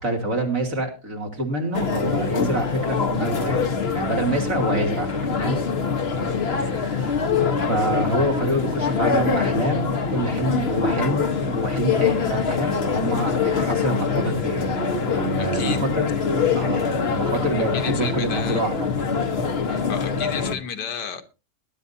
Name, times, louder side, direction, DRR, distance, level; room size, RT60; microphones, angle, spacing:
voice 1, 0.0-3.6 3.9-5.1 5.4-5.6 6.4-7.1 7.7-14.7 15.0-16.1 16.5-18.9, right 1 dB, 50° right, 3.0 m, -26 dB
sound 1, 1.7-20.6, left 5 dB, 40° left, 1.3 m, -24 dB
voice 2, 6.2-7.1 15.4-15.9 16.3-16.4 17.7-18.6 19.9-21.2, left 7 dB, 75° left, 1.8 m, -33 dB
20.0 x 10.5 x 2.7 m
omnidirectional pair, 1.8 m